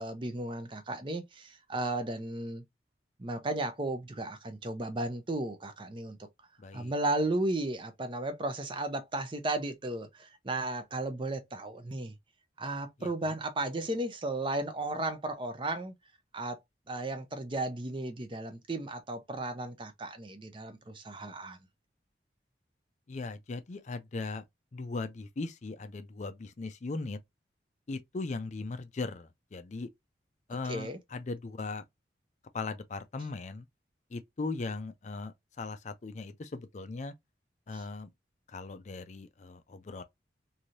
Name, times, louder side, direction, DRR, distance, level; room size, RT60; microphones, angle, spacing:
voice 1, 0.0-2.6 3.2-6.2 6.7-12.1 12.6-15.9 16.3-16.6 16.9-21.6 30.7-31.0, right 2 dB, 30° right, 0.5 m, -34 dB
voice 2, 6.6-6.9 13.0-13.3 23.1-24.4 24.7-27.2 27.9-29.9 30.5-31.8 32.5-33.7 34.1-37.1 37.7-38.1 38.5-40.0, left 3 dB, 40° left, 0.4 m, -38 dB
3.1 x 2.7 x 2.5 m
head